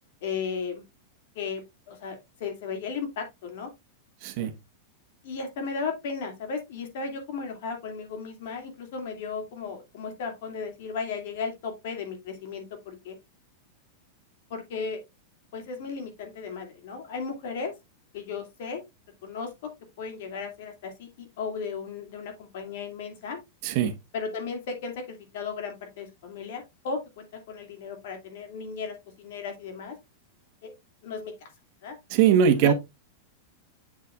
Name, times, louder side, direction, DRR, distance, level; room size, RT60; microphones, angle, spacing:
voice 1, 0.2-0.8 1.3-3.7 5.2-13.2 14.5-15.0 15.5-17.7 18.1-18.8 19.2-19.7 20.0-23.4 24.1-30.0 30.6-30.7 31.0-31.5 31.8-32.0 32.6-32.7, left 5 dB, 65° left, 2.4 m, -35 dB
voice 2, 4.2-4.5 23.6-23.9 32.1-32.7, right 8 dB, 50° right, 1.2 m, -20 dB
7.4 x 6.7 x 2.4 m
supercardioid pair, 145°, 0 cm